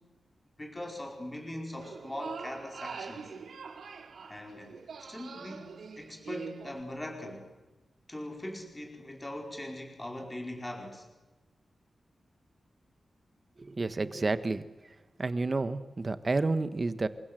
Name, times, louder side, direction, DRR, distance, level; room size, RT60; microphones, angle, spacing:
voice 1, 0.6-3.3 4.2-7.5 8.1-11.1, left 1 dB, 15° left, 2 dB, 5.0 m, -41 dB
sound 1, 1.8-6.8, right 5 dB, 80° right, 2.8 m, -44 dB
voice 2, 13.6-14.6 15.2-17.1, right 3 dB, 30° right, 12 dB, 1.5 m, -30 dB
29.0 x 24.0 x 7.9 m, 1.1 s
wide cardioid pair, 150°, 0 cm